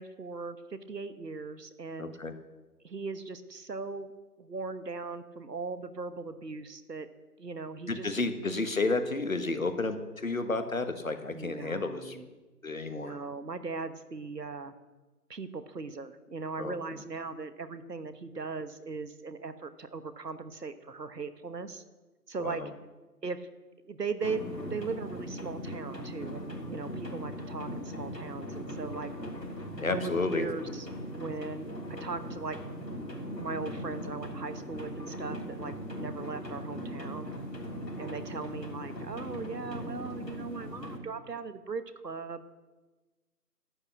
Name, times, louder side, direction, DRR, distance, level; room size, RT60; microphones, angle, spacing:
voice 1, 0.0-2.2 2.8-4.1 4.4-7.1 7.4-8.1 11.3-12.3 12.9-14.7 15.3-21.8 22.3-22.6 23.2-23.5 23.8-29.1 29.9-30.9 31.2-32.6 33.4-37.3 38.0-42.4, right 4 dB, 75° right, 12 dB, 1.3 m, -38 dB
voice 2, 2.0-2.3 7.9-12.2 12.6-13.1 16.6-16.7 22.4-22.7 29.8-30.5, left 3 dB, 55° left, 9 dB, 1.4 m, -31 dB
sound 1, 24.2-41.0, equal, 85° left, 3.5 m, -39 dB
11.5 x 8.2 x 8.4 m, 1.2 s
figure-of-eight pair, 170°, 49 cm